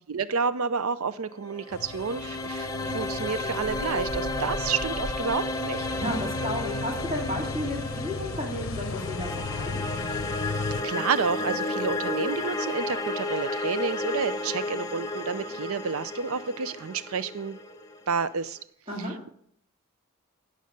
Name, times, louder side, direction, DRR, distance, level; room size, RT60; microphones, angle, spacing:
voice 1, 0.1-5.9 10.8-17.6 18.1-18.6 19.0-19.3, right 5 dB, 70° right, 15 dB, 0.5 m, -30 dB
sound 1, 1.3-18.4, left 2 dB, 15° left, 0.7 m, -33 dB
sound 2, 1.7-10.8, left 4 dB, 65° left, 0.7 m, -36 dB
sound 3, 5.2-17.8, equal, 30° left, 1.2 m, -47 dB
voice 2, 6.0-9.8 18.9-19.2, left 1 dB, 25° right, -2 dB, 2.3 m, -33 dB
16.0 x 6.5 x 6.7 m, 0.66 s
head